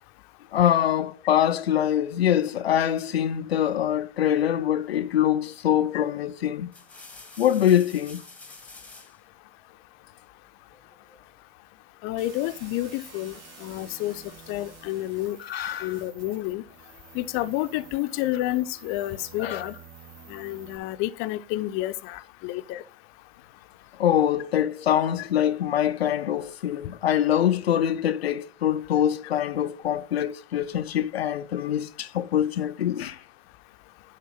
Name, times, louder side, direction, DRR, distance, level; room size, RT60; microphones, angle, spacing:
voice 1, 0.5-6.7 7.4-8.2 15.4-16.0 19.4-19.7 24.0-33.2, left 10 dB, 90° left, 0.5 m, -24 dB
sound 1, 5.6-5.9 6.5-9.2 10.7-11.3, left 2 dB, 5° left, 1.6 m, -48 dB
voice 2, 12.0-13.3 13.6-14.2 14.5-15.4 15.8-16.6 17.1-19.7 20.3-22.8 25.2-25.3, left 15 dB, 45° left, 0.7 m, -30 dB
sound 2, 12.2-20.8, right 5 dB, 40° right, 2.5 m, -49 dB
10.5 x 3.7 x 5.7 m
hypercardioid pair, 95°, 30 cm